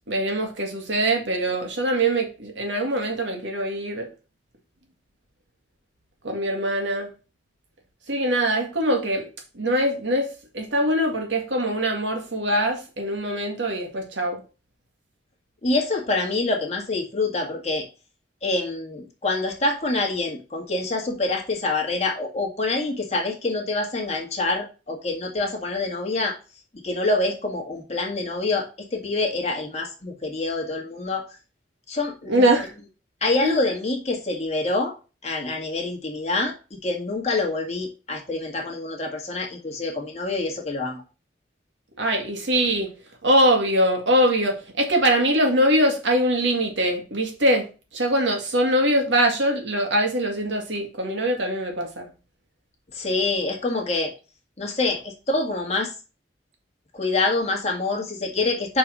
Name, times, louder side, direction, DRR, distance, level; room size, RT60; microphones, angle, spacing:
voice 1, 0.1-4.1 6.2-7.1 8.1-9.3 9.6-10.3 10.5-14.4 32.3-32.7 33.4-33.6 42.0-42.9 43.2-47.7 47.9-52.1, right 1 dB, 85° right, 1.9 m, -22 dB
voice 2, 15.6-17.8 18.4-26.3 26.8-31.3 31.9-32.5 33.2-34.9 35.2-36.5 36.8-41.0 52.9-54.1 54.6-55.9 56.9-58.8, left 2 dB, 35° left, 1.9 m, -26 dB
5.6 x 4.5 x 6.2 m
head